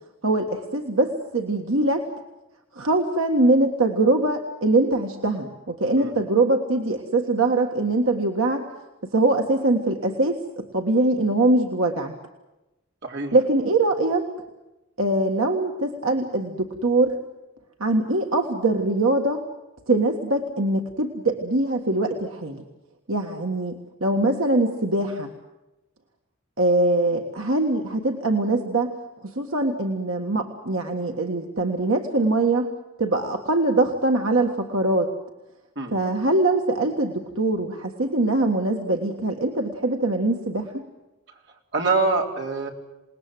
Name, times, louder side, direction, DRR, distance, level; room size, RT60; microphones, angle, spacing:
voice 1, 0.2-2.1 2.7-8.6 9.1-12.1 13.3-14.2 15.0-17.1 17.8-19.4 19.9-22.6 23.1-23.7 24.0-25.3 26.6-28.9 29.2-32.7 33.0-35.1 35.9-40.9, right 2 dB, 80° right, 2 dB, 1.7 m, -22 dB
voice 2, 13.0-13.4 35.8-35.9 41.7-42.7, right 3 dB, 55° right, 1 dB, 3.7 m, -24 dB
28.0 x 19.5 x 7.8 m, 0.99 s
head